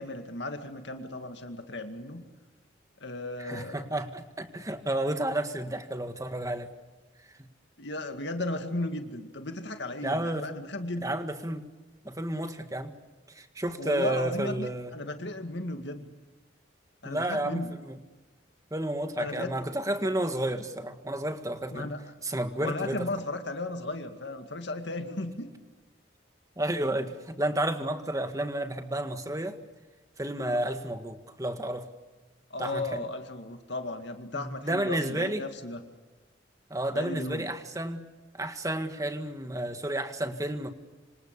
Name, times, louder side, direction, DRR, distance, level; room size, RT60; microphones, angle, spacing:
voice 1, 0.0-2.2 3.0-3.8 7.8-11.1 13.8-16.1 17.0-17.7 19.2-19.5 21.7-22.0 22.6-25.5 30.4-30.6 32.5-35.8 36.9-37.5, left 2 dB, 65° left, 6 dB, 2.2 m, -35 dB
voice 2, 3.4-6.7 10.0-10.4 11.0-11.6 12.0-12.9 13.3-14.9 17.1-18.0 18.7-21.9 22.2-23.1 26.6-29.6 30.2-31.9 32.6-33.0 34.3-35.4 36.7-38.0 38.3-40.7, right 1 dB, 20° right, 8 dB, 1.8 m, -31 dB
27.0 x 26.5 x 6.8 m, 1.3 s
head